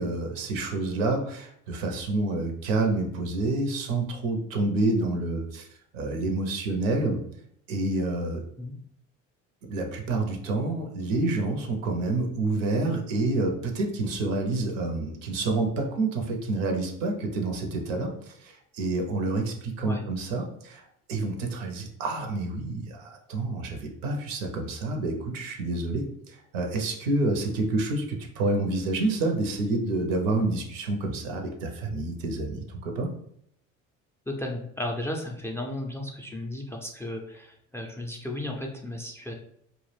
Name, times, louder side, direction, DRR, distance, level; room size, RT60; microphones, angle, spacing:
voice 1, 0.0-5.7 5.9-7.2 7.7-8.4 9.7-20.8 21.1-33.1, right 2 dB, 85° right, 4 dB, 0.6 m, -28 dB
voice 2, 34.3-39.3, left 1 dB, 5° left, 2 dB, 0.3 m, -34 dB
2.3 x 2.0 x 3.1 m, 0.69 s
hypercardioid pair, 65°, 38 cm